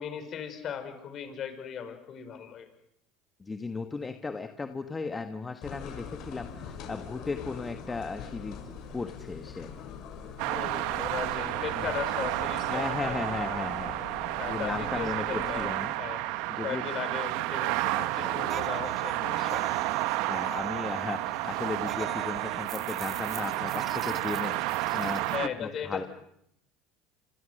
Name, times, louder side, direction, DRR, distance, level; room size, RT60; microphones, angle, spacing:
voice 1, 0.0-2.7 10.5-13.7 14.4-15.7 16.0-16.2 16.6-19.7 21.8-22.1 25.3-26.1, left 8 dB, 40° left, 8 dB, 5.7 m, -37 dB
voice 2, 3.4-9.7 11.8-11.9 12.7-15.9 16.5-16.9 17.9-18.4 20.3-24.6 24.9-26.0, left 4 dB, 15° left, 7 dB, 1.4 m, -36 dB
sound 1, 5.6-15.7, left 6 dB, 60° left, 7.3 m, -43 dB
sound 2, 10.4-25.5, right 17 dB, 70° right, 1.1 m, -31 dB
sound 3, 18.5-25.4, right 7 dB, 35° right, 1.0 m, -43 dB
28.0 x 26.5 x 6.6 m, 0.74 s
supercardioid pair, 120°, 0 cm